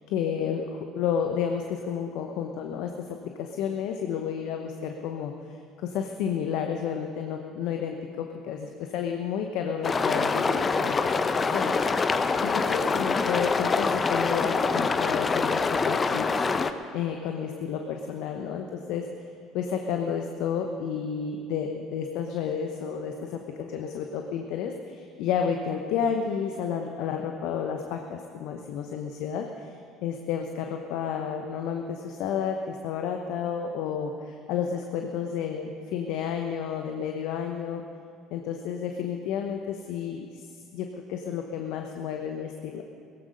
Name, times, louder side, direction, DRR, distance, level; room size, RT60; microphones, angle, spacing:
voice 1, 0.0-11.0 11.5-16.3 16.9-19.3 19.5-37.8 38.3-42.8, left 7 dB, 65° left, 4 dB, 0.9 m, -31 dB
sound 1, 9.8-16.7, left 4 dB, 30° left, 0.8 m, -25 dB
17.0 x 15.0 x 5.4 m, 2.3 s
hypercardioid pair, 65°, 0 cm